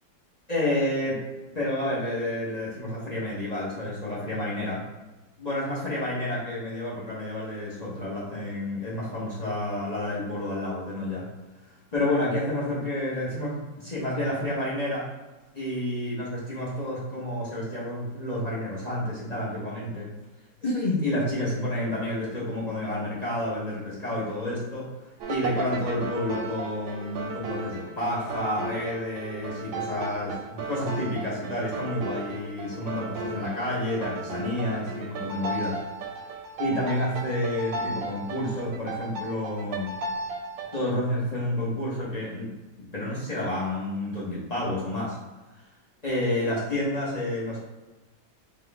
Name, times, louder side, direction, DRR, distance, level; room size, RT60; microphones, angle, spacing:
voice 1, 0.5-1.2 1.5-4.8 5.4-11.3 11.9-15.1 15.5-20.1 20.6-24.9 25.3-35.8 36.6-39.9 40.7-42.5 42.9-45.2 46.0-47.6, left 1 dB, 30° left, -7 dB, 0.8 m, -29 dB
sound 1, 25.2-40.9, right 3 dB, 75° right, 1.2 m, -35 dB
3.8 x 3.1 x 3.4 m, 1.1 s
omnidirectional pair, 2.2 m